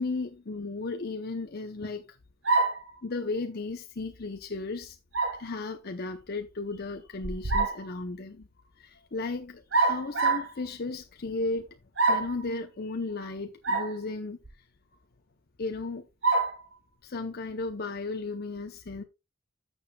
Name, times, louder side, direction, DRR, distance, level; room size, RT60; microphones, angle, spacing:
voice 1, 0.0-2.1 3.0-5.0 5.4-8.5 8.8-11.7 12.1-14.4 15.6-16.1 17.0-19.0, left 3 dB, 50° left, 0.7 m, -35 dB
sound 1, 2.5-2.9 5.1-5.4 7.2-7.8 9.7-10.5 12.0-12.4 13.6-13.9 14.4-14.5 16.2-16.6, right 3 dB, 65° right, 1.7 m, -25 dB
13.0 x 7.1 x 2.3 m
head